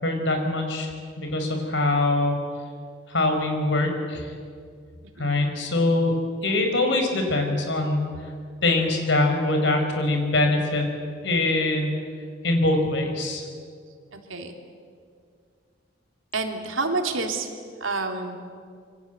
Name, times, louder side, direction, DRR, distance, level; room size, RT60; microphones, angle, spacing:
voice 1, 0.0-2.4 3.1-4.3 5.2-6.2 6.4-8.1 8.6-10.9 11.2-11.9 12.4-13.4, left 2 dB, 65° left, 4 dB, 4.8 m, -23 dB
voice 2, 5.2-5.5 14.1-14.5 16.3-17.5 17.8-18.4, right 3 dB, 85° right, 4 dB, 3.1 m, -28 dB
26.5 x 23.5 x 8.2 m, 2.2 s
head